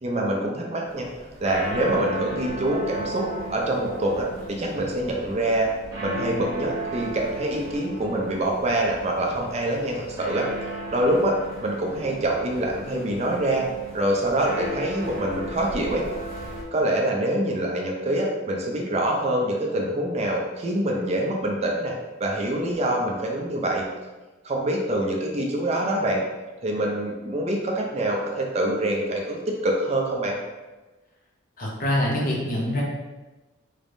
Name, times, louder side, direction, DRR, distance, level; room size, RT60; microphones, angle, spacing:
voice 1, 0.0-1.1 1.4-5.7 6.0-10.5 10.9-13.7 13.9-16.0 16.7-21.9 22.2-23.9 24.4-26.2 26.6-30.4, right 1 dB, 35° right, 0 dB, 0.5 m, -25 dB
sound 1, 0.8-16.6, right 1 dB, 15° right, 0.9 m, -36 dB
voice 2, 31.6-32.8, left 1 dB, 45° left, -3 dB, 0.8 m, -25 dB
3.3 x 3.1 x 2.6 m, 1.2 s
head